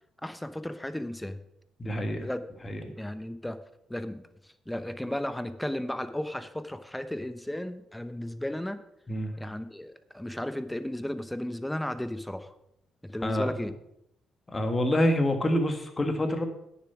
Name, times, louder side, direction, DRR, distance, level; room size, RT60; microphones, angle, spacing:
voice 1, 0.2-1.4 2.2-2.4 3.0-3.6 3.9-4.2 4.7-8.8 9.4-12.5 13.1-13.7, left 1 dB, 5° left, 12 dB, 0.8 m, -34 dB
voice 2, 1.8-2.3 2.6-2.8 9.1-9.3 13.2-13.5 14.5-16.5, left 1 dB, 25° left, 6 dB, 1.7 m, -26 dB
9.6 x 7.1 x 5.9 m, 0.79 s
cardioid pair, 90°, 0 cm